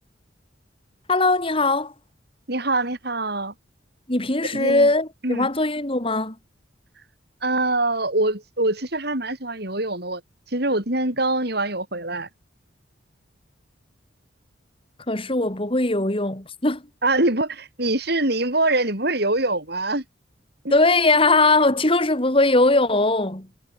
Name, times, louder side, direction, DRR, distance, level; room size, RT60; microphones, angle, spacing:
voice 1, 1.1-1.9 4.1-6.3 15.1-16.8 20.7-23.5, left 2 dB, 30° left, 2.8 m, -20 dB
voice 2, 2.5-3.5 4.4-4.9 5.2-5.5 7.4-10.2 10.5-12.3 17.0-20.0 20.6-20.8, right 2 dB, 55° right, 7.5 m, -24 dB
head